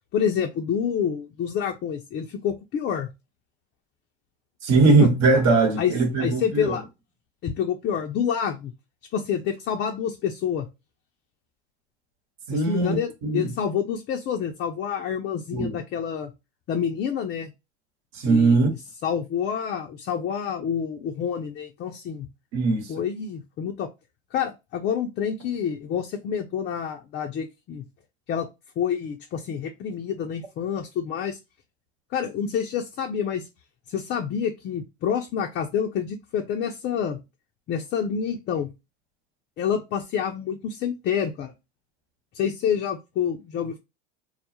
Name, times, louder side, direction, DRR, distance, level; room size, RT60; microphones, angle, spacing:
voice 1, 0.1-3.1 5.8-5.9 6.2-6.8 7.4-8.7 9.1-10.7 12.5-16.3 16.7-17.5 18.2-18.6 19.0-22.3 22.9-23.9 24.3-27.9 28.3-28.5 28.8-31.4 32.1-33.5 33.9-37.2 37.7-38.7 39.6-41.5 42.3-43.8, left 8 dB, 35° left, 0.4 m, -28 dB
voice 2, 4.6-6.8 12.5-13.0 13.2-13.5 15.5-15.7 18.1-18.7 22.5-22.9, right 3 dB, 55° right, 1.0 m, -20 dB
2.2 x 2.0 x 2.7 m
hypercardioid pair, 100°, 32 cm